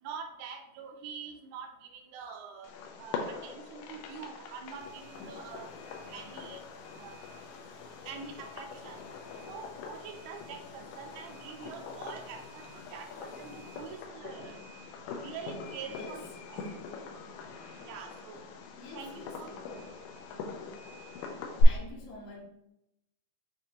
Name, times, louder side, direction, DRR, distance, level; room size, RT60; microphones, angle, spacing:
voice 1, 0.0-2.7 3.0-5.7 6.1-6.6 6.9-7.2 8.1-9.1 9.5-14.7 15.2-16.6 17.8-18.5 18.9-19.5, right 6 dB, 80° right, 5 dB, 2.0 m, -45 dB
Fireworks, 2.6-21.6, left 4 dB, 90° left, 2.2 m, -41 dB
sound 1, 3.9-14.1, left 1 dB, 55° right, 2.0 m, -60 dB
voice 2, 15.9-16.2 18.8-20.0 21.6-22.5, left 2 dB, 75° left, -1 dB, 2.0 m, -47 dB
6.2 x 2.6 x 2.8 m, 0.83 s
omnidirectional pair, 3.6 m